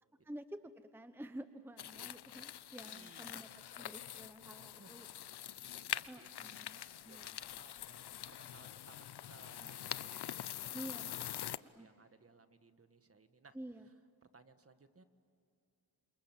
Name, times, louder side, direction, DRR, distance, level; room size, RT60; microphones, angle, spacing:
voice 1, 0.2-5.1 6.1-7.4 9.6-9.7 10.7-11.4 11.7-11.9 13.5-13.9, right 1 dB, 5° right, 9 dB, 0.9 m, -50 dB
sound 1, 1.8-11.6, left 11 dB, 75° left, 0.7 m, -45 dB
voice 2, 2.8-3.5 4.6-6.5 7.1-11.0 11.8-13.6 13.8-13.9 14.3-15.0, right 4 dB, 35° right, 9 dB, 1.7 m, -63 dB
28.5 x 27.0 x 7.4 m, 2.7 s
wide cardioid pair, 95°, 40 cm